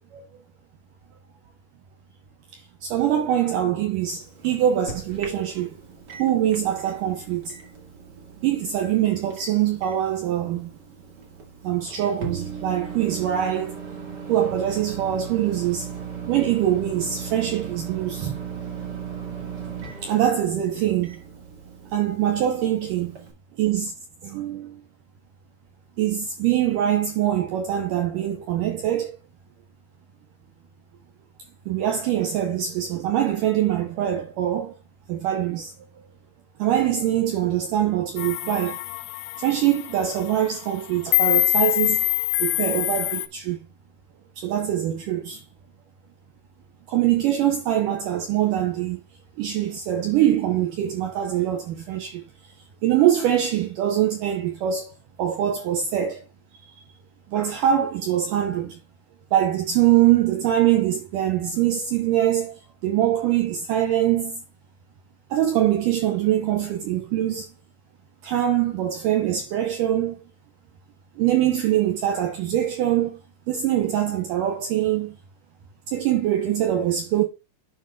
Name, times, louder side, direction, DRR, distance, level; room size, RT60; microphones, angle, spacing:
voice 1, 2.8-5.8 6.2-7.5 8.4-10.7 11.6-13.8 14.3-15.9 16.3-18.4 20.0-21.2 21.9-23.2 23.6-23.9 24.2-24.8 26.0-29.1 31.7-34.7 35.1-35.7 36.6-38.8 39.4-42.1 42.4-43.6 44.4-45.4 46.9-49.0 49.4-52.2 52.8-54.9 55.2-56.2 57.3-58.8 59.3-64.4 65.3-67.5 68.2-70.2 71.2-73.2 73.5-75.2 75.9-77.2, right 11 dB, 75° right, 2.0 m, -23 dB
Microwave oven, 4.0-23.3, right 6 dB, 55° right, 1.1 m, -38 dB
sound 1, 38.2-43.3, left 21 dB, 85° left, 2.6 m, -24 dB
11.5 x 4.5 x 2.3 m
omnidirectional pair, 4.8 m